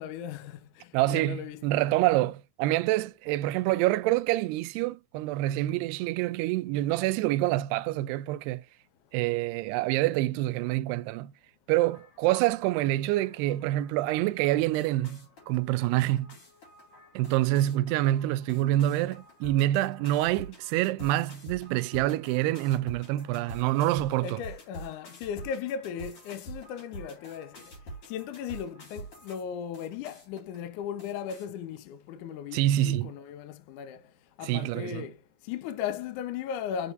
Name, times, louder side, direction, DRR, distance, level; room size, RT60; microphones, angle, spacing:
voice 1, 0.0-1.6 24.2-27.6 28.1-34.0 34.4-35.2 35.5-36.9, left 8 dB, 70° left, 2.0 m, -37 dB
voice 2, 0.9-8.6 9.1-11.3 11.7-16.3 17.2-24.4 32.5-33.1 34.4-35.1, right 15 dB, 90° right, 2.6 m, -26 dB
sound 1, 11.7-29.4 29.7-30.6 31.0-31.5, right 1 dB, 45° left, 5.2 m, -47 dB
8.2 x 6.7 x 2.5 m
omnidirectional pair, 4.6 m